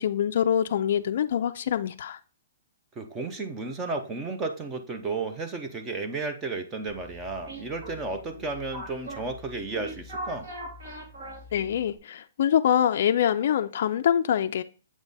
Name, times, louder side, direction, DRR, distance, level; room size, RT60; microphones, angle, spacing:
voice 1, 0.0-2.2 11.5-14.6, left 9 dB, 45° left, 0.3 m, -24 dB
voice 2, 3.0-10.5, right 3 dB, 15° right, 0.5 m, -33 dB
sound 1, 6.9-12.0, right 1 dB, 55° right, 2.5 m, -41 dB
7.2 x 3.5 x 4.0 m
hypercardioid pair, 170°, 0 cm